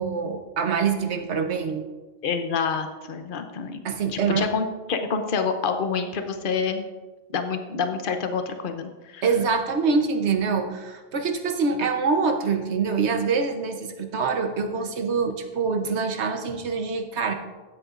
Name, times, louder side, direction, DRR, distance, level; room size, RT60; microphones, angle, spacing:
voice 1, 0.0-1.9 3.8-4.5 9.2-17.3, right 5 dB, 85° right, 6 dB, 1.2 m, -25 dB
voice 2, 2.2-3.8 4.1-6.9 7.3-9.2, left 5 dB, 55° left, 7 dB, 0.9 m, -27 dB
15.5 x 8.0 x 2.5 m, 1.2 s
omnidirectional pair, 1.1 m